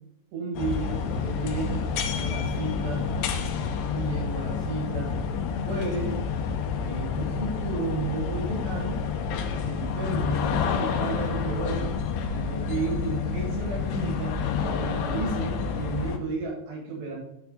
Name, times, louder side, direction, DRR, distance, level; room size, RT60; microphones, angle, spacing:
voice 1, 0.3-3.1 3.9-5.2 5.6-6.2 6.8-9.0 9.7-11.9 12.3-17.2, right 3 dB, 75° right, -2 dB, 3.9 m, -33 dB
sound 1, 0.6-16.2, left 6 dB, 85° left, 2.9 m, -29 dB
9.4 x 4.7 x 3.9 m, 0.81 s
omnidirectional pair, 4.9 m